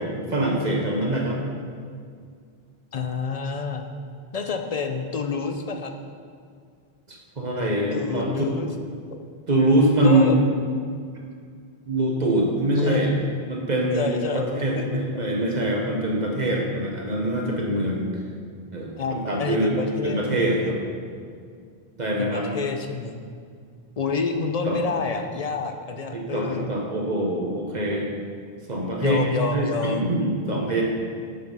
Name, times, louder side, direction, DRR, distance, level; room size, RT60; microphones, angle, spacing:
voice 1, 0.0-1.4 7.1-8.4 9.5-10.4 11.9-13.1 13.5-18.1 18.7-20.7 22.0-22.5 24.6-24.8 26.1-28.1 28.7-29.2 29.5-30.8, right 1 dB, 45° right, -1 dB, 1.2 m, -24 dB
voice 2, 2.9-3.8 4.3-5.9 7.9-8.7 10.0-10.4 12.7-13.4 13.9-14.8 19.0-20.7 22.1-23.2 24.0-26.7 29.0-30.1, left 4 dB, 45° left, 5 dB, 0.6 m, -28 dB
7.5 x 6.1 x 5.4 m, 2.1 s
omnidirectional pair, 1.1 m